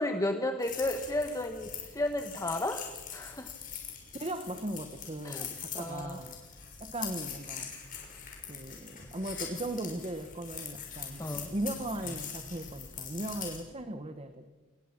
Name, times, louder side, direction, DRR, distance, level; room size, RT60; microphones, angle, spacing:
voice 1, 0.0-2.8 3.1-3.5 5.2-5.5 5.7-6.2 11.2-11.5, left 1 dB, 15° left, 6 dB, 1.2 m, -33 dB
sound 1, 0.6-13.6, left 7 dB, 40° left, 6.4 m, -43 dB
voice 2, 4.2-6.4 6.8-7.7 8.5-14.5, right 1 dB, 30° right, 8 dB, 1.2 m, -38 dB
28.0 x 21.0 x 6.0 m, 1.3 s
head